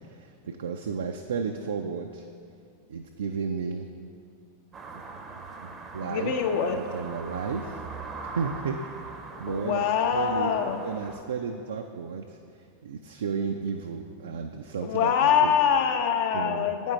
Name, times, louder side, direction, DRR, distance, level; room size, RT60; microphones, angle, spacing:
voice 1, 0.0-2.3 2.9-3.9 5.6-6.3 6.7-7.8 8.3-10.5 10.8-15.5 16.3-16.7, right 5 dB, 65° right, 5 dB, 0.3 m, -33 dB
sound 1, 4.7-11.2, right 4 dB, 20° right, 0.6 m, -41 dB
voice 2, 6.0-6.8 9.5-10.8 14.8-16.9, left 7 dB, 45° left, 6 dB, 0.6 m, -24 dB
8.5 x 5.3 x 3.8 m, 2.4 s
figure-of-eight pair, 90°, 0 cm